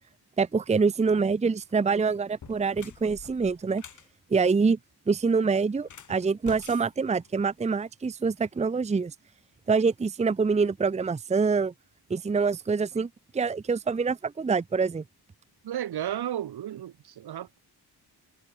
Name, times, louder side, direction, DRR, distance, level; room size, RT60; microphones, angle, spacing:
voice 1, 0.4-3.8 4.3-4.8 5.1-9.1 9.7-11.7 12.1-15.0, right 5 dB, 15° right, 0.7 m, -25 dB
sound 1, 1.6-1.8 2.3-4.1 5.8-7.8, left 7 dB, 45° left, 3.6 m, -48 dB
voice 2, 15.6-17.6, right 11 dB, 70° right, 1.4 m, -33 dB
wide cardioid pair, 165°, 40 cm